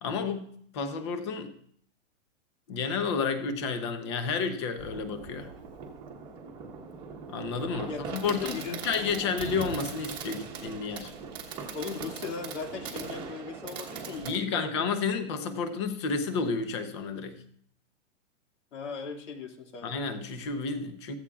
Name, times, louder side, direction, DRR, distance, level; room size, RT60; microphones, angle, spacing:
voice 1, 0.0-1.5 2.7-5.5 7.3-8.6 8.8-11.1 14.2-17.4 19.8-21.1, left 5 dB, 20° left, 9 dB, 0.8 m, -31 dB
Fireworks, 4.8-14.3, right 5 dB, 10° right, 1.2 m, -40 dB
voice 2, 8.4-8.8 11.7-14.9 18.7-19.9, left 5 dB, 70° left, 4 dB, 2.3 m, -38 dB
15.5 x 14.5 x 2.4 m, 0.64 s
hypercardioid pair, 175°, 37 cm